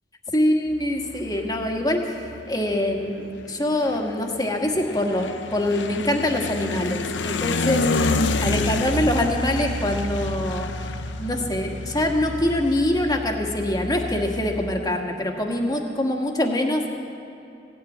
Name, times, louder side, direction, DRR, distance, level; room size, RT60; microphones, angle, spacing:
voice 1, 0.3-2.2 2.5-7.8 8.4-10.7 11.2-16.9, left 1 dB, 20° left, 2 dB, 1.5 m, -24 dB
sound 1, 0.7-14.8, left 2 dB, 75° left, 0.7 m, -29 dB
16.5 x 7.9 x 9.6 m, 2.8 s
head